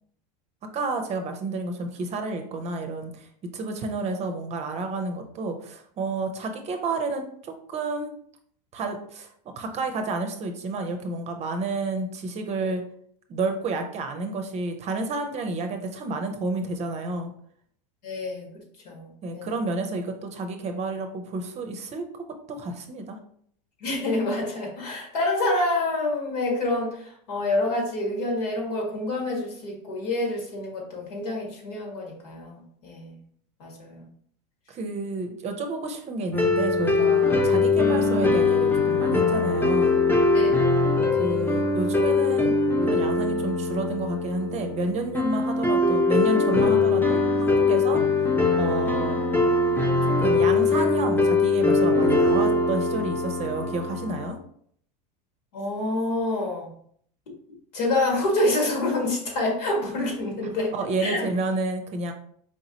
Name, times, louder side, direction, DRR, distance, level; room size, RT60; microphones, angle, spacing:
voice 1, 0.7-3.3 3.5-8.1 8.7-9.3 9.6-12.8 13.3-17.3 19.2-23.2 34.7-40.0 41.2-42.6 42.8-48.3 48.6-49.2 50.2-54.4 60.7-62.1, right 3 dB, 35° right, 5 dB, 0.6 m, -30 dB
voice 2, 18.0-18.5 18.8-19.5 23.8-33.2 33.6-34.1 40.3-40.5 55.5-56.7 57.7-60.7 61.0-61.2, left 2 dB, 80° left, 0 dB, 1.7 m, -27 dB
sound 1, 36.3-54.3, left 3 dB, 10° left, 0.6 m, -22 dB
4.6 x 2.9 x 2.8 m, 0.63 s
supercardioid pair, 115°, 20 cm